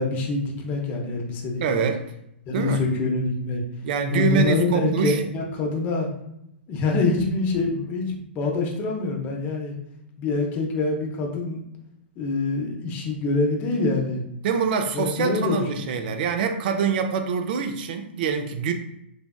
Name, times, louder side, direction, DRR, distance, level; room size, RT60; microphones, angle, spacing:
voice 1, 0.0-1.9 2.5-3.6 4.1-6.1 6.7-9.7 10.2-11.6 12.2-14.2 14.9-16.0, left 3 dB, 30° left, 0 dB, 0.6 m, -25 dB
voice 2, 1.6-2.0 2.5-2.8 3.8-5.2 14.4-18.7, right 6 dB, 55° right, 7 dB, 0.4 m, -25 dB
3.2 x 2.4 x 2.2 m, 0.81 s
hypercardioid pair, 130°, 6 cm